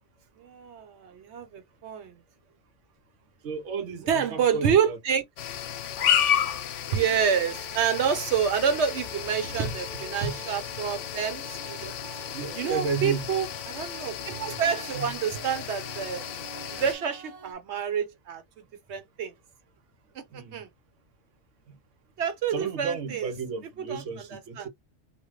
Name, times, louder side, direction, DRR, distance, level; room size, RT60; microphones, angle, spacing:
voice 1, 0.4-2.1 4.1-5.2 6.9-11.9 12.5-16.2 16.6-18.6 18.9-19.3 20.1-20.7 22.2-23.3 23.8-24.0 24.3-24.7, right 7 dB, 70° right, 1.0 m, -28 dB
voice 2, 3.4-5.0 9.4-10.4 12.3-13.3 14.9-15.1 20.3-20.7 21.7-21.8 22.5-24.7, right 5 dB, 90° right, 1.1 m, -33 dB
sound 1, 5.4-17.0, left 10 dB, 85° left, 0.9 m, -32 dB
sound 2, 7.1-17.5, right 6 dB, 40° right, 0.6 m, -47 dB
3.1 x 2.1 x 3.0 m
omnidirectional pair, 1.2 m